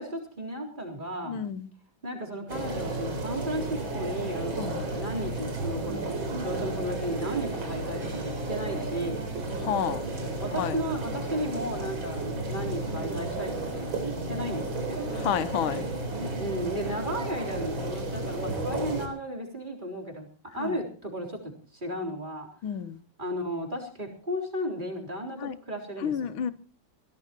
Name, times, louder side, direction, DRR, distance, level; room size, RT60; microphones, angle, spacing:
voice 1, 0.0-1.4 2.0-9.3 10.4-15.1 16.4-20.3 20.5-22.5 23.2-26.5, equal, 25° right, 4.0 m, -34 dB
voice 2, 1.3-1.7 4.6-4.7 9.6-10.0 10.6-10.7 15.2-15.9 20.6-20.7 22.6-23.0 25.4-25.6 26.0-26.5, left 9 dB, 85° left, 1.7 m, -30 dB
sound 1, 2.5-19.1, right 2 dB, 75° right, 4.4 m, -33 dB
23.0 x 16.5 x 3.0 m
omnidirectional pair, 2.2 m